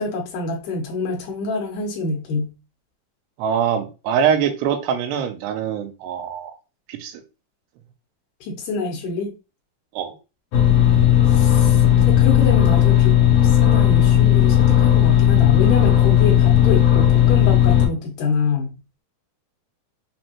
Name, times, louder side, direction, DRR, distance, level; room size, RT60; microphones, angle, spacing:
voice 1, 0.0-2.5 8.4-9.4 11.3-18.8, left 4 dB, 90° left, 1.8 m, -26 dB
voice 2, 3.4-6.6 6.9-7.2 9.9-10.1, right 8 dB, 85° right, 2.8 m, -23 dB
sound 1, 10.5-17.9, left 11 dB, 75° left, 1.8 m, -15 dB
6.4 x 2.6 x 2.9 m
omnidirectional pair, 4.8 m